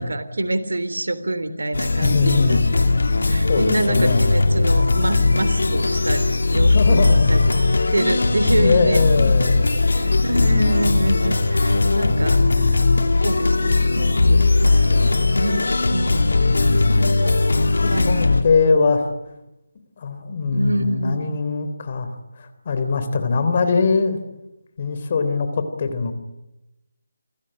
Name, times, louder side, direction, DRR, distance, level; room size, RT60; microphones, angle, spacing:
voice 1, 0.0-2.8 3.3-7.4 7.9-9.6 9.9-12.7 13.2-15.7 15.9-16.4 16.9-17.4 17.9-18.2 20.5-21.3, right 1 dB, 80° right, 12 dB, 3.2 m, -26 dB
sound 1, 1.7-18.4, left 3 dB, 70° left, 2.8 m, -18 dB
voice 2, 2.0-2.7 3.5-4.3 6.7-7.5 8.6-9.8 12.6-12.8 14.9-15.1 16.4-16.9 17.8-19.1 20.0-24.2 24.8-26.1, left 4 dB, 40° left, 9 dB, 3.4 m, -22 dB
28.0 x 15.5 x 9.9 m, 0.96 s
figure-of-eight pair, 160°, 0 cm